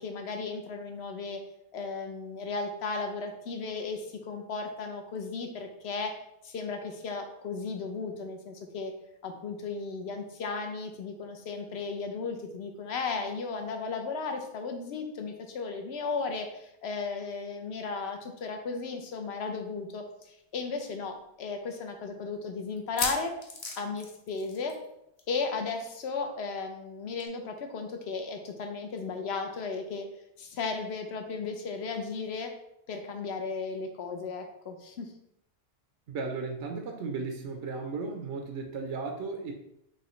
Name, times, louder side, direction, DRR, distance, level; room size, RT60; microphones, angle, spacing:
voice 1, 0.0-1.4 1.7-8.9 9.2-23.3 23.8-24.8 25.3-30.0 30.4-32.5 32.9-35.1, left 4 dB, 70° left, 5 dB, 0.9 m, -35 dB
sound 1, 20.1-20.2 20.5-20.6 21.2-21.3 22.8-24.9 25.2-25.4 25.6-25.7 27.2-27.3, left 3 dB, 40° left, 0.7 m, -36 dB
voice 2, 36.1-39.5, right 4 dB, 90° right, 3 dB, 1.0 m, -35 dB
5.5 x 2.9 x 3.1 m, 0.78 s
omnidirectional pair, 1.2 m